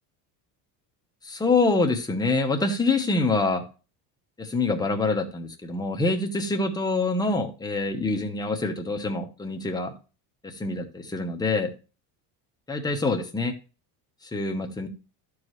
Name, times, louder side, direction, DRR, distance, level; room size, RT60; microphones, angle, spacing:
voice 1, 1.2-3.6 4.4-9.9 10.4-11.7 12.7-13.5 14.2-14.9, left 3 dB, 10° left, 1.0 m, -25 dB
12.0 x 4.8 x 3.1 m
cardioid pair, 145°, 44 cm